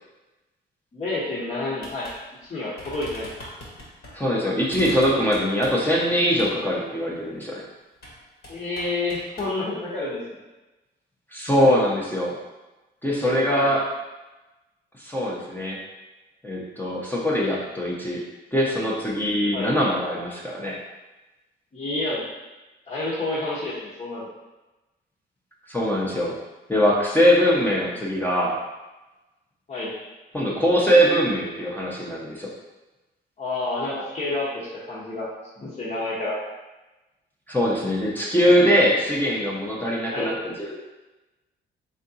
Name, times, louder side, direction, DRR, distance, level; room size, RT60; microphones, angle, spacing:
voice 1, 0.9-2.1 2.5-3.3 8.5-10.4 13.5-13.7 19.5-19.7 21.7-22.2 22.9-24.3 27.8-27.9 29.7-29.9 33.4-35.3 35.6-36.4 40.1-40.4, left 2 dB, 35° left, -10 dB, 1.1 m, -29 dB
sound 1, 1.8-2.2 2.4-2.5 2.8-4.1 4.7-6.0 6.4-6.5 8.0-8.2 8.4-9.5, left 1 dB, 55° left, 1.4 m, -41 dB
voice 2, 4.1-7.6 11.3-12.4 13.0-13.9 15.0-15.8 16.4-18.2 18.5-20.8 25.7-26.3 26.7-28.5 30.3-32.5 37.5-40.8, equal, 10° left, -5 dB, 0.8 m, -22 dB
3.8 x 3.3 x 2.8 m, 1.1 s
cardioid pair, 90°, 20 cm